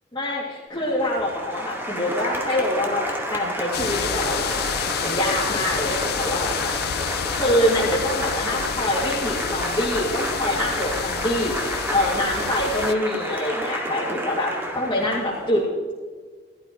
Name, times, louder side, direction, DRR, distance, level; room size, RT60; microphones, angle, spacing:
voice 1, 0.1-4.7 5.0-6.7 7.3-11.6 11.9-14.5 14.7-15.6, left 1 dB, 25° left, -6 dB, 2.4 m, -25 dB
Applause, 0.7-15.5, equal, 15° right, 2.1 m, -30 dB
sound 1, 3.7-12.9, left 9 dB, 60° left, 0.4 m, -29 dB
16.0 x 12.5 x 3.1 m, 1.5 s
head